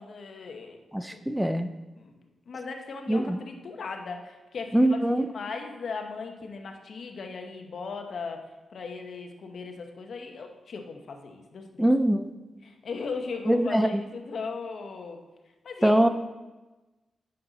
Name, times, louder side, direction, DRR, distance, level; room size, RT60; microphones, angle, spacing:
voice 1, 0.0-0.8 1.1-1.2 2.0-2.1 2.5-8.4 8.7-11.9 12.6-15.2 15.6-16.0, left 4 dB, 60° left, 4 dB, 1.0 m, -38 dB
voice 2, 0.9-1.7 3.1-3.4 4.7-5.3 11.8-12.3 13.5-14.0 15.8-16.1, right 1 dB, 5° right, 9 dB, 0.4 m, -23 dB
9.5 x 6.7 x 4.0 m, 1.1 s
wide cardioid pair, 120°, 0 cm